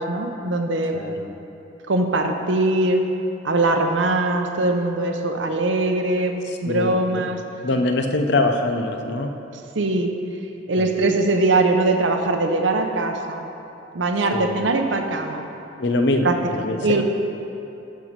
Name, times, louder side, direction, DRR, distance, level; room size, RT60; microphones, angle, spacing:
voice 1, 0.0-1.0 1.9-3.1 3.4-7.4 9.5-10.1 10.7-13.4 13.9-15.4 16.2-16.4 16.8-17.0, right 2 dB, 70° right, 5 dB, 0.8 m, -21 dB
voice 2, 0.9-1.3 6.4-7.2 7.6-9.4 10.8-11.1 14.3-14.7 15.8-17.0, left 2 dB, 60° left, 5 dB, 0.7 m, -24 dB
11.5 x 4.6 x 6.6 m, 2.8 s
head